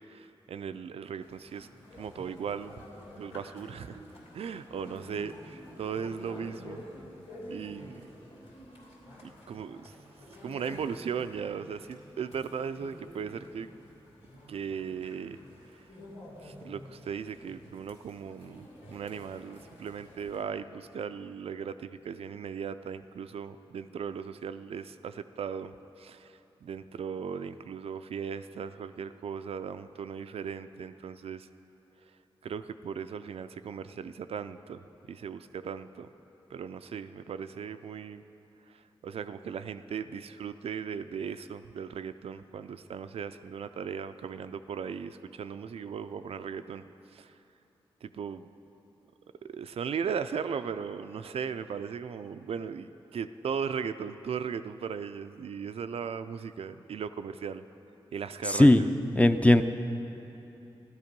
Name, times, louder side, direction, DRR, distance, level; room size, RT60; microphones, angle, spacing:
voice 1, 0.1-1.7 2.0-2.8 3.2-4.0 4.3-6.8 7.5-8.1 9.2-9.9 10.4-13.7 14.5-15.4 15.7-15.9 16.4-31.5 32.4-36.1 36.5-38.2 38.7-46.8 47.1-47.3 48.0-48.5 49.4-57.6 58.1-58.9, right 7 dB, 75° right, 10 dB, 0.4 m, -37 dB
sound 1, 1.2-20.4, left 1 dB, 90° left, 3.4 m, -49 dB
voice 2, 58.5-58.8 59.2-59.6, left 1 dB, 15° left, 9 dB, 0.5 m, -18 dB
14.0 x 12.0 x 5.3 m, 3.0 s
wide cardioid pair, 85°, 10 cm